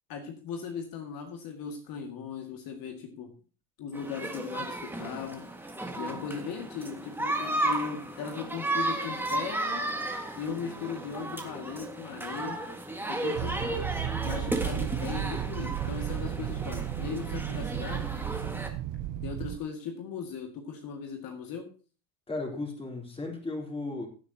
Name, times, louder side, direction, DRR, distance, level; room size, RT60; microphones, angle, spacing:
voice 1, 0.1-3.3 3.8-5.4 6.0-9.9 10.4-12.6 13.1-13.8 14.2-18.1 19.2-21.7, left 6 dB, 50° left, 3 dB, 2.2 m, -38 dB
sound 1, 3.9-18.7, right 2 dB, 5° right, 1.9 m, -34 dB
sound 2, 13.3-19.6, right 12 dB, 50° right, 0.7 m, -34 dB
voice 2, 22.3-24.1, left 2 dB, 15° left, 1 dB, 3.8 m, -35 dB
16.5 x 8.5 x 2.9 m, 0.37 s
supercardioid pair, 125°, 44 cm